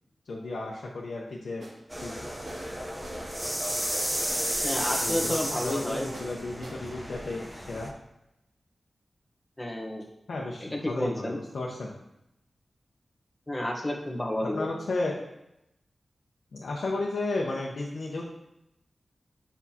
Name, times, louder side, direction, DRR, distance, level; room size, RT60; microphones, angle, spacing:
voice 1, 0.3-1.6 2.0-2.1 5.0-7.9 10.3-11.9 14.4-15.2 16.5-18.2, left 2 dB, 90° left, -4 dB, 0.9 m, -33 dB
sound 1, 1.6-2.1 2.5-3.4 4.3-4.5 4.8-5.4 5.7-6.3 6.6-6.8 7.1-7.2, right 1 dB, 80° right, 2.3 m, -44 dB
sound 2, 1.9-7.9, equal, 15° right, 0.8 m, -32 dB
voice 2, 4.6-6.1 9.6-10.1 10.6-11.4 13.5-14.7, left 1 dB, 15° left, 0 dB, 1.1 m, -31 dB
8.3 x 5.7 x 2.9 m, 0.86 s
wide cardioid pair, 105°, 0 cm